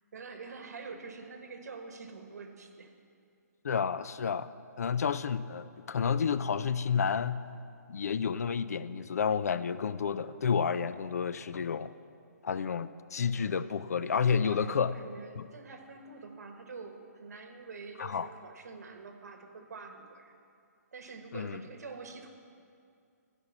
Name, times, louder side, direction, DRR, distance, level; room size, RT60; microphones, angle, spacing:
voice 1, 0.1-2.9 14.4-20.3 20.9-22.3, right 4 dB, 65° right, 5 dB, 1.4 m, -46 dB
voice 2, 3.6-4.5 4.8-7.4 7.9-11.9 12.4-14.9 15.4-15.5 18.0-18.3 21.3-21.6, left 6 dB, 65° left, 14 dB, 0.4 m, -30 dB
14.5 x 5.3 x 7.3 m, 2.4 s
hypercardioid pair, 175°, 9 cm